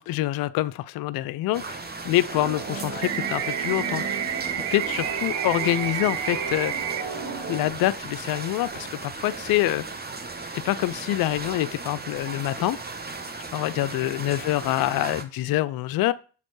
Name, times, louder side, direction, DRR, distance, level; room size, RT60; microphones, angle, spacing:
voice 1, 0.0-1.8 2.0-4.0 4.7-6.7 7.5-9.8 10.5-12.8 13.5-16.1, left 16 dB, 50° left, 0.5 m, -26 dB
sound 1, 1.5-15.2, right 3 dB, 20° right, 0.9 m, -37 dB
sound 2, 2.3-7.7, right 4 dB, 50° right, 2.2 m, -35 dB
sound 3, 3.0-7.0, right 10 dB, 75° right, 0.7 m, -30 dB
7.1 x 4.1 x 3.2 m
hypercardioid pair, 45°, 46 cm